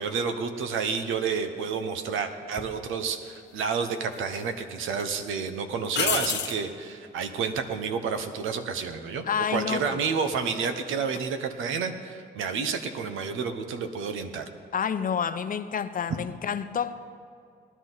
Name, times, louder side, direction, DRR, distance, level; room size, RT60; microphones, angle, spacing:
voice 1, 0.0-9.3 9.5-14.5, right 5 dB, 85° right, 1.0 m, -30 dB
sound 1, 2.6-2.7 3.8-4.5 4.9-5.0 5.9-6.6 9.7-10.1, left 8 dB, 60° left, 1.2 m, -29 dB
voice 2, 9.3-10.0 14.7-16.9, left 7 dB, 45° left, 0.7 m, -29 dB
18.5 x 11.0 x 4.0 m
cardioid pair, 90°, 20 cm